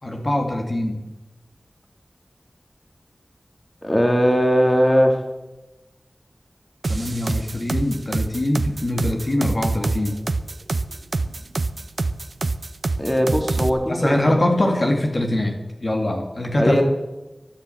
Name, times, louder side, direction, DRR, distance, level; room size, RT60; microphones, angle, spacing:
voice 1, 0.0-1.0 6.9-10.2 13.9-15.5 15.8-16.8, left 1 dB, 50° left, 2 dB, 2.2 m, -22 dB
voice 2, 3.8-5.2 13.0-14.3 16.6-16.8, equal, 20° left, 3 dB, 2.4 m, -19 dB
sound 1, 6.8-13.7, right 3 dB, 75° right, 0.7 m, -25 dB
13.0 x 11.0 x 7.9 m, 1.0 s
wide cardioid pair, 55°, 0 cm